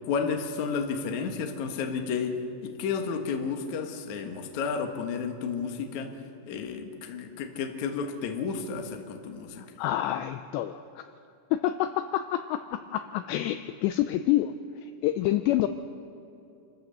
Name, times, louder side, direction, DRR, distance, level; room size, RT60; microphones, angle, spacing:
voice 1, 0.0-6.1 6.5-9.7, left 5 dB, 65° left, 4 dB, 1.9 m, -32 dB
voice 2, 9.6-11.0 11.5-15.7, left 13 dB, 85° left, 9 dB, 2.6 m, -28 dB
27.5 x 15.0 x 6.7 m, 2.7 s
omnidirectional pair, 5.4 m